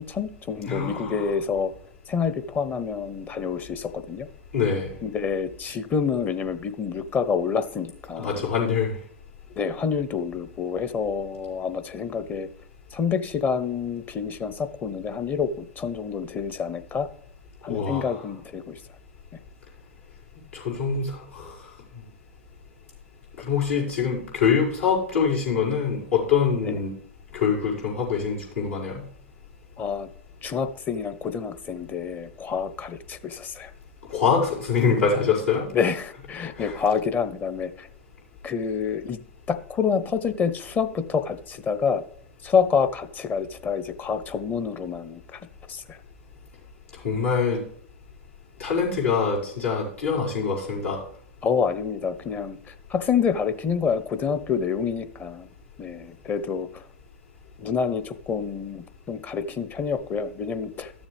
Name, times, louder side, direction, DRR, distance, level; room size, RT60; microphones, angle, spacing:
voice 1, 0.0-1.7 2.1-4.3 5.0-8.4 9.5-12.5 12.9-17.1 17.6-18.8 26.6-26.8 29.8-30.1 30.4-33.7 35.7-37.9 38.4-39.2 39.5-42.0 42.4-45.4 45.7-46.0 51.4-52.6 52.9-55.5 55.8-56.8 57.6-60.9, left 6 dB, 25° left, 11 dB, 0.8 m, -27 dB
voice 2, 0.7-1.3 4.5-4.9 8.2-8.9 17.7-18.2 20.5-21.6 23.4-26.9 27.3-29.0 34.1-35.7 36.6-36.8 47.0-47.6 48.6-51.0, left 6 dB, 85° left, -6 dB, 5.0 m, -24 dB
13.0 x 7.2 x 3.4 m, 0.62 s
hypercardioid pair, 105°, 7 cm